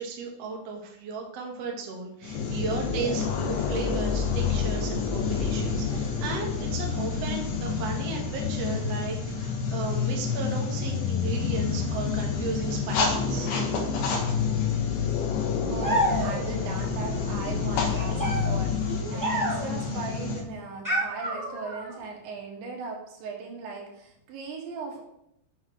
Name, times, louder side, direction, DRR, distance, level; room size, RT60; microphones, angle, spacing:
voice 1, 0.0-13.5, right 4 dB, 45° right, 0 dB, 2.2 m, -35 dB
sound 1, 2.2-20.4, left 4 dB, 55° left, 2.5 m, -32 dB
sound 2, 2.3-18.8, left 7 dB, 85° left, 3.2 m, -30 dB
voice 2, 15.6-25.1, right 4 dB, 80° right, 1 dB, 4.2 m, -38 dB
sound 3, 15.8-16.6 17.8-19.8 20.8-21.9, equal, 20° right, 0.4 m, -29 dB
7.8 x 7.5 x 6.2 m, 0.77 s
omnidirectional pair, 5.1 m